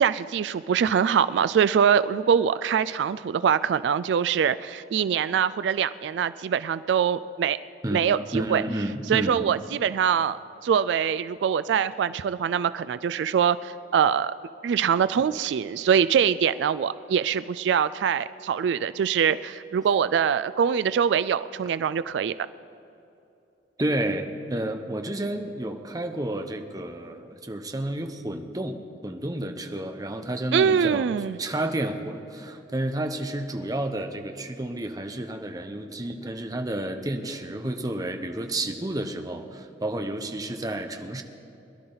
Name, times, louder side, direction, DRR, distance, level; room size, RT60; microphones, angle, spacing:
voice 1, 0.0-7.6 7.9-8.6 9.1-14.3 14.6-22.3 30.5-31.4, right 7 dB, 80° right, 14 dB, 0.3 m, -23 dB
voice 2, 8.3-9.4 23.8-31.1 31.4-41.2, right 1 dB, 20° right, 6 dB, 0.8 m, -31 dB
21.5 x 12.0 x 3.9 m, 2.8 s
head